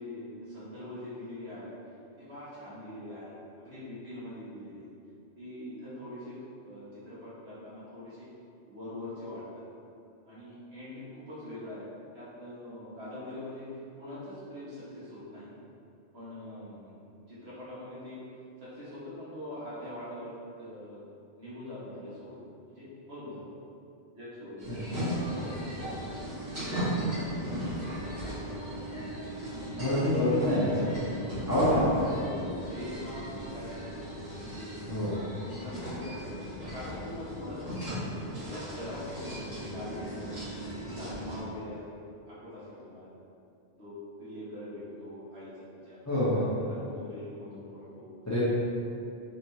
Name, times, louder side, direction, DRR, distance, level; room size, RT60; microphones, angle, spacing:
voice 1, 0.0-1.7 2.2-4.9 5.4-8.3 8.7-9.4 10.3-11.8 12.1-13.7 13.9-15.5 16.1-16.9 17.3-18.2 18.6-20.3 20.6-21.0 21.4-23.4 24.1-25.9 26.5-27.6 27.9-28.8 29.5-30.2 31.4-35.1 35.4-37.9 38.2-40.4 40.7-42.0 42.3-43.1 43.8-46.0 46.3-48.1, left 1 dB, 70° right, -12 dB, 1.8 m, -43 dB
sound 1, 24.6-41.4, right 1 dB, 35° right, 1.6 m, -37 dB
voice 2, 24.7-25.0 29.8-31.0 31.5-32.1 34.8-35.2 46.1-46.5 48.3-48.4, left 1 dB, 20° left, -10 dB, 0.6 m, -26 dB
4.4 x 3.1 x 2.7 m, 2.6 s
omnidirectional pair, 1.1 m